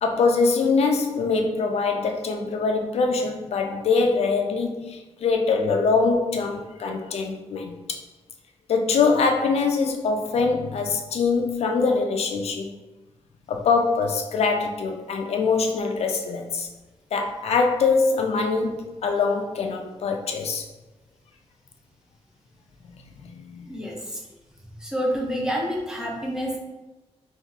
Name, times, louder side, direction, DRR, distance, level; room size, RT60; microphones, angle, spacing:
voice 1, 0.0-8.0 8.7-12.7 13.5-16.7 17.1-20.7 22.8-22.9 23.2-23.7, left 4 dB, 70° left, 3 dB, 0.4 m, -23 dB
voice 2, 23.6-24.2 24.8-26.6, equal, 5° right, -2 dB, 0.6 m, -28 dB
2.8 x 2.3 x 3.6 m, 1.1 s
wide cardioid pair, 130°, 11 cm